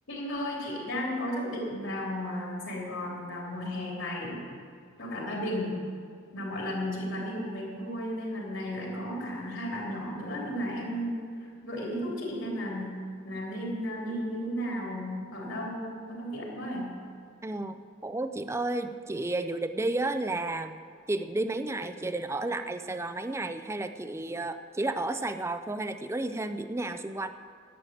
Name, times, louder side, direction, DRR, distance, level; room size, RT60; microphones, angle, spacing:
voice 1, 0.1-4.4 5.0-5.8 6.3-17.0, equal, 75° left, -3 dB, 3.4 m, -34 dB
voice 2, 17.4-20.8 21.1-27.3, right 2 dB, 15° right, 9 dB, 0.4 m, -32 dB
11.0 x 9.0 x 7.7 m, 2.2 s
head